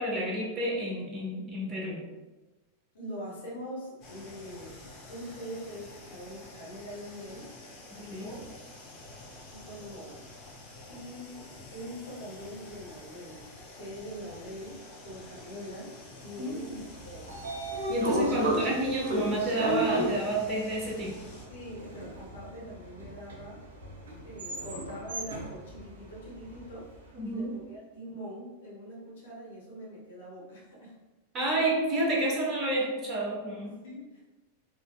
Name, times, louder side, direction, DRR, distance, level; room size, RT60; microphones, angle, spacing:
voice 1, 0.0-2.0 8.1-8.3 16.4-16.6 17.9-21.1 27.1-27.5 31.3-33.7, right 1 dB, 25° right, -3 dB, 0.9 m, -29 dB
voice 2, 2.9-4.8 5.1-7.5 7.9-8.5 9.5-10.6 10.9-13.5 13.8-15.9 16.2-17.3 21.5-23.6 24.2-26.9 27.2-30.9 33.6-34.2, equal, 60° left, -5 dB, 1.2 m, -43 dB
sound 1, 4.0-21.5, left 2 dB, 35° left, 0.9 m, -49 dB
Train / Sliding door, 16.8-27.0, right 1 dB, 65° right, 0.7 m, -35 dB
3.8 x 2.6 x 2.3 m, 1.1 s
figure-of-eight pair, 90°, 0 cm